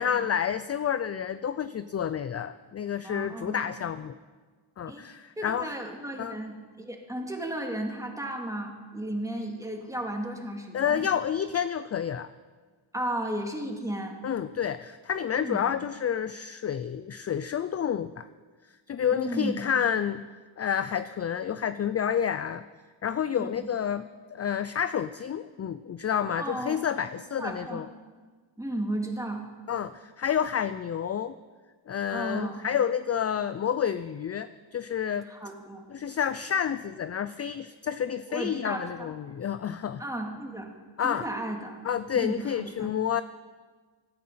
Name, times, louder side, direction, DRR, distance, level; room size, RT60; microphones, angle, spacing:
voice 1, 0.0-4.2 4.8-5.7 6.2-6.4 10.7-12.3 14.2-18.3 18.9-20.3 20.6-22.6 23.0-24.1 24.3-27.9 29.7-31.3 31.9-35.3 35.9-40.0 41.0-41.3 41.8-43.2, left 8 dB, 35° left, 13 dB, 0.4 m, -29 dB
voice 2, 3.0-3.6 4.9-5.0 5.4-11.1 12.9-14.2 15.4-15.6 19.1-19.6 23.4-23.7 26.4-26.8 27.4-27.8 28.6-29.4 32.1-32.6 35.3-35.9 38.3-39.1 40.0-40.7 41.0-41.8 42.1-42.9, right 1 dB, 5° right, 1 dB, 2.4 m, -34 dB
16.0 x 13.5 x 5.7 m, 1.5 s
cardioid pair, 100°, 48 cm